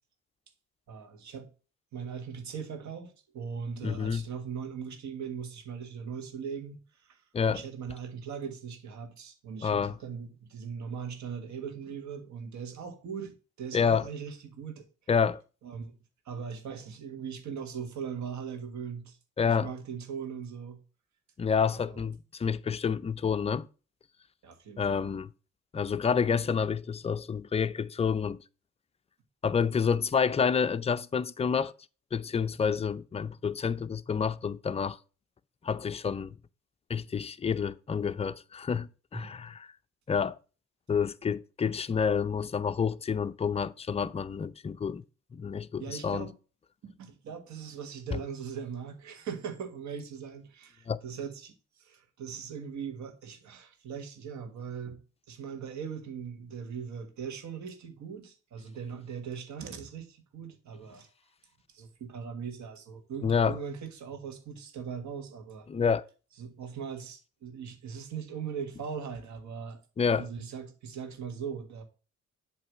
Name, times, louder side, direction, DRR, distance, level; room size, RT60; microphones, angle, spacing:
voice 1, 0.9-1.5 1.9-14.8 15.6-16.0 16.2-19.2 19.4-20.8 21.8-22.0 24.4-25.1 39.1-39.4 44.0-44.1 45.8-46.3 46.8-55.0 55.3-61.1 61.7-65.7 66.4-69.8 70.2-71.8, right 6 dB, 70° right, 1.6 m, -40 dB
voice 2, 3.8-4.2 7.3-7.6 9.6-9.9 13.7-14.1 15.1-15.4 19.4-19.7 21.4-23.7 24.8-25.3 25.7-28.4 29.4-31.7 32.1-35.0 35.6-36.3 36.9-39.7 40.1-40.4 40.9-45.0 45.3-46.3 50.9-51.0 63.2-63.6 65.7-66.0 70.0-70.3, left 6 dB, 20° left, 0.4 m, -28 dB
7.9 x 3.2 x 6.3 m
cardioid pair, 90°, 30 cm